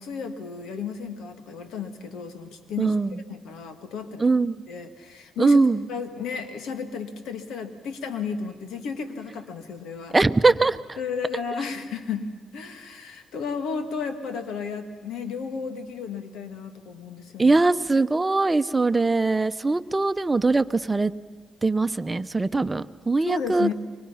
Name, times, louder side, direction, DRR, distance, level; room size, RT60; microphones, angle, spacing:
voice 1, 0.0-2.9 3.3-4.3 4.7-5.6 5.9-10.2 11.0-17.6 23.3-23.7, left 5 dB, 85° left, 8 dB, 2.0 m, -33 dB
voice 2, 2.8-3.2 4.2-4.5 5.4-5.9 10.1-11.0 17.4-21.1 21.6-23.7, right 3 dB, 25° right, 13 dB, 0.9 m, -21 dB
29.5 x 24.0 x 5.8 m, 1.3 s
supercardioid pair, 60°, 0 cm